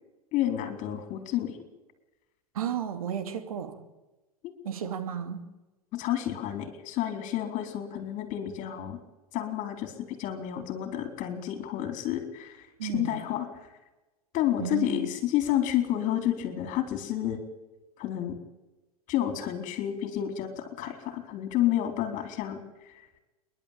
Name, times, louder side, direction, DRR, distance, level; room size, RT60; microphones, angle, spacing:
voice 1, 0.3-1.6 4.4-4.5 5.9-9.0 9.3-13.5 14.3-17.4 18.0-18.4 19.1-22.6, left 12 dB, 40° left, 8 dB, 4.3 m, -30 dB
voice 2, 2.5-3.8 4.6-5.4 12.8-13.2 14.6-15.1, right 8 dB, 70° right, 7 dB, 2.8 m, -33 dB
27.5 x 11.5 x 8.8 m, 1.1 s
figure-of-eight pair, 90°, 19 cm